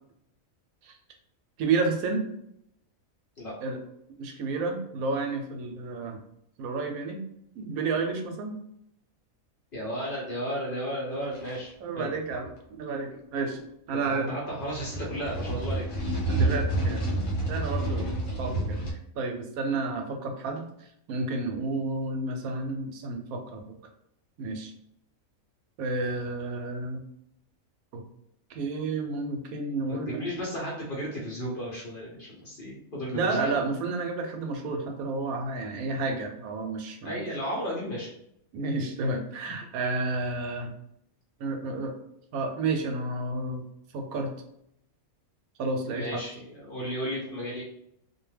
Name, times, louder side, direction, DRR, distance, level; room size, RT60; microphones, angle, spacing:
voice 1, 1.6-2.2 3.6-3.8 4.2-6.2 6.6-7.2 7.5-8.6 11.8-13.6 13.9-14.3 16.3-17.0 17.5-18.1 18.4-18.8 19.2-20.7 21.1-23.6 24.4-24.7 25.8-27.0 27.9-28.0 28.5-30.2 33.1-37.2 38.5-40.7 41.4-41.9 42.3-43.6 43.9-44.3 45.6-46.2, right 3 dB, 80° right, 3 dB, 1.0 m, -31 dB
voice 2, 9.7-12.1 13.9-15.9 16.3-16.5 29.9-33.6 37.0-38.1 45.9-47.6, equal, 50° left, -4 dB, 0.7 m, -34 dB
sound 1, 11.3-11.6 12.3-12.5 14.6-18.9, right 2 dB, 85° left, 1.2 m, -29 dB
2.5 x 2.1 x 3.2 m, 0.73 s
omnidirectional pair, 1.5 m